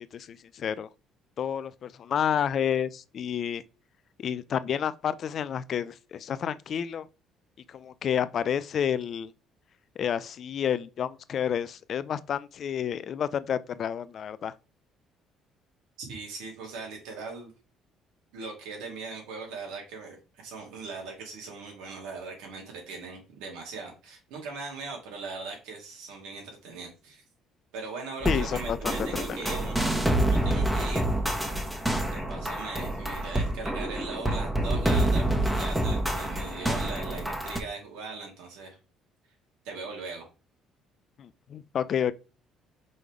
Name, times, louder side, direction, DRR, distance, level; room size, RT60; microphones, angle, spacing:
voice 1, 0.1-0.9 1.4-3.6 4.2-7.1 7.7-9.3 10.0-14.5 28.3-29.4 41.2-42.1, left 8 dB, 50° left, 0.5 m, -30 dB
voice 2, 16.0-17.5 18.3-27.2 27.7-29.8 30.3-31.1 32.1-38.8 39.6-40.2, right 4 dB, 90° right, 2.7 m, -40 dB
sound 1, 28.2-37.6, right 1 dB, 5° right, 1.2 m, -27 dB
5.3 x 3.8 x 4.7 m
cardioid pair, 105°, 0 cm